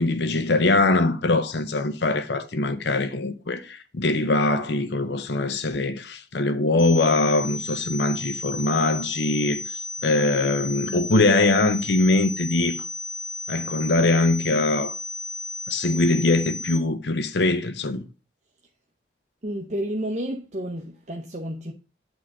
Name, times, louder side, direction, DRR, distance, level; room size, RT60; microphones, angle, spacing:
voice 1, 0.0-12.8 13.5-14.9 15.7-18.0, left 2 dB, 65° left, 0.7 m, -22 dB
sound 1, 6.8-16.8, left 3 dB, 50° left, 1.0 m, -34 dB
voice 2, 19.4-21.7, equal, 40° right, 0.8 m, -30 dB
8.5 x 3.8 x 6.0 m
head